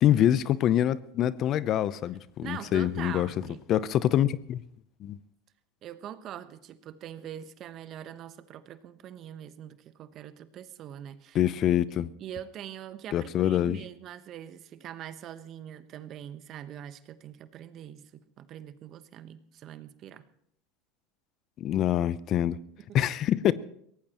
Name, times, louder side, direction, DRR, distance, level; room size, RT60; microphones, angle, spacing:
voice 1, 0.0-3.3 3.7-4.6 5.0-5.2 11.3-12.1 13.1-13.8 21.6-22.6 22.9-23.5, left 11 dB, 45° left, 0.6 m, -25 dB
voice 2, 2.4-3.6 5.8-11.4 12.0-18.0 18.4-20.2 22.9-23.0, right 10 dB, 45° right, 1.1 m, -43 dB
23.0 x 17.0 x 3.0 m
hypercardioid pair, 90°, 0 cm